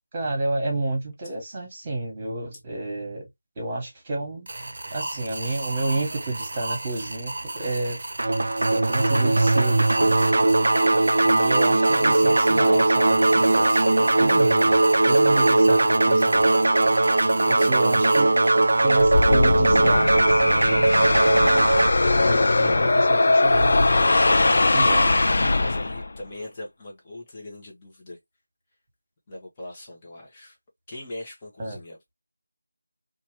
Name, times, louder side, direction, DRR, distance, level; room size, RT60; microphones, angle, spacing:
voice 1, 0.1-3.3 3.6-4.5 4.9-8.0 8.7-10.2 11.2-13.7 14.0-16.5 17.5-18.3 18.8-21.7 22.3-25.2 31.6-31.8, right 2 dB, 20° right, 1.3 m, -30 dB
sound 1, 4.5-19.2, right 2 dB, 50° right, 0.7 m, -34 dB
sound 2, 8.2-21.9, right 2 dB, 70° right, 0.3 m, -19 dB
sound 3, 19.0-26.2, left 2 dB, 55° left, 0.3 m, -20 dB
voice 2, 25.5-28.2 29.3-30.6 30.9-32.1, left 1 dB, 20° left, 0.9 m, -40 dB
2.9 x 2.3 x 3.0 m
figure-of-eight pair, 170°, 0 cm